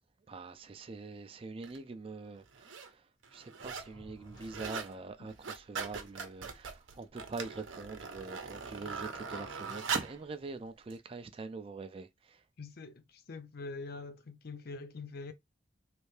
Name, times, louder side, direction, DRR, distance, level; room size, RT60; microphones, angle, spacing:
voice 1, 0.3-12.4, right 3 dB, 30° right, 0.3 m, -44 dB
sound 1, 1.6-1.8 2.5-2.9 3.2-3.9 4.2-4.9 5.3-10.2 10.9-11.0, right 5 dB, 80° right, 0.7 m, -40 dB
sound 2, 3.6-5.3, left 1 dB, 20° left, 0.8 m, -56 dB
voice 2, 12.6-15.3, left 3 dB, 50° left, 0.5 m, -44 dB
3.3 x 2.7 x 3.2 m
head